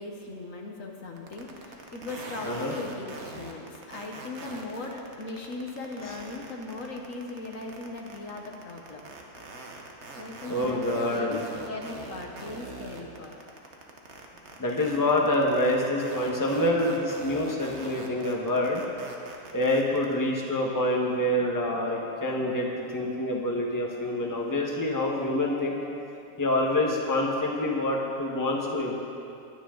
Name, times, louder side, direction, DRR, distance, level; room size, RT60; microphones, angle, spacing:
voice 1, 0.0-9.0 10.1-13.3, left 2 dB, 60° left, 1 dB, 1.5 m, -38 dB
sound 1, 1.2-20.1, right 3 dB, 50° right, 1.4 m, -43 dB
voice 2, 10.5-11.4 14.6-18.8 19.5-25.8 26.4-28.9, left 1 dB, 15° left, -1 dB, 1.3 m, -26 dB
21.0 x 9.6 x 3.9 m, 2.6 s
omnidirectional pair, 1.6 m